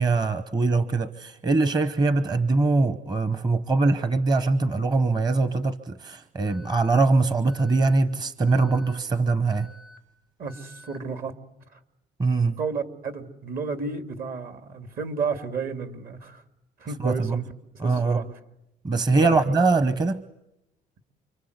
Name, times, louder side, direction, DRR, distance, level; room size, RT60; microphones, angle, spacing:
voice 1, 0.0-9.7 12.2-12.5 17.0-17.4 17.8-18.2 18.8-20.2, right 3 dB, 25° right, 13 dB, 0.9 m, -22 dB
Alarm, 6.5-7.0 7.5-8.0 8.5-9.0 9.5-10.0 10.5-11.0, left 1 dB, 85° right, 5.8 m, -50 dB
voice 2, 10.4-11.3 11.7-11.8 12.6-16.4 16.8-17.5 17.7-18.4 19.1-19.6, right 5 dB, 60° right, 8 dB, 2.7 m, -32 dB
29.5 x 24.5 x 8.2 m, 0.87 s
cardioid pair, 110°, 17 cm